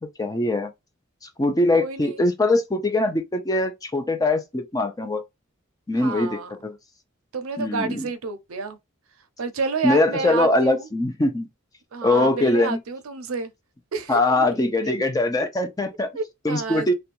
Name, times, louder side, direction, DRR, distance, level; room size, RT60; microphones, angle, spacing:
voice 1, 0.2-0.7 1.4-5.2 5.9-6.8 7.6-8.1 9.8-11.5 12.0-12.8 14.1-16.1 16.4-16.9, left 2 dB, 15° left, 0.5 m, -22 dB
voice 2, 1.7-2.1 6.0-6.5 7.3-8.8 9.4-10.9 11.9-13.5 13.9-14.4 14.8-15.0 16.1-16.9, right 4 dB, 85° right, 0.5 m, -29 dB
2.5 x 2.2 x 2.8 m
head